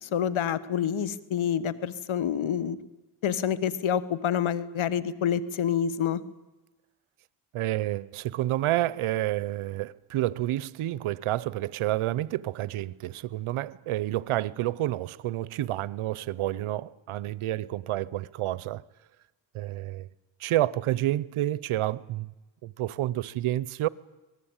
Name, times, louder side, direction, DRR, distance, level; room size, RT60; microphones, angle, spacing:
voice 1, 0.0-2.8 3.2-6.2, left 8 dB, 70° left, 1.5 m, -27 dB
voice 2, 7.5-18.8 19.5-20.1 20.4-22.3 22.6-23.9, right 15 dB, 85° right, 0.9 m, -29 dB
25.0 x 19.5 x 9.0 m
cardioid pair, 80°, 49 cm